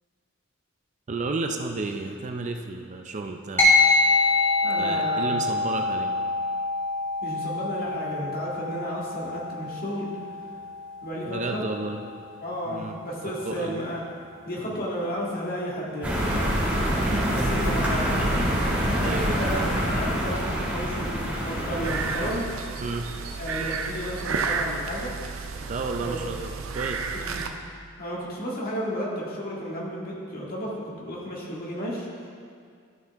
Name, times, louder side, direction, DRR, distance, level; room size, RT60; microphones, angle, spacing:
voice 1, 1.1-3.7 4.8-6.1 11.2-12.0 12.7-13.0 13.4-13.8 17.0-17.2 19.0-19.4 22.8-23.1 25.7-27.1, right 3 dB, 35° right, 4 dB, 0.5 m, -32 dB
sound 1, 3.6-13.3, left 3 dB, 10° left, 1.7 m, -26 dB
voice 2, 4.6-5.3 7.2-10.2 11.0-11.6 12.4-14.0 14.5-18.2 19.0-22.5 23.4-25.1 26.0-26.2 27.1-27.4 28.0-30.7 31.0-32.1, equal, 45° left, -5 dB, 1.8 m, -33 dB
sound 2, 16.0-22.3, equal, 10° right, 2.1 m, -25 dB
sound 3, 21.8-27.5, right 5 dB, 85° right, 0.6 m, -32 dB
13.0 x 5.6 x 3.5 m, 2.2 s
head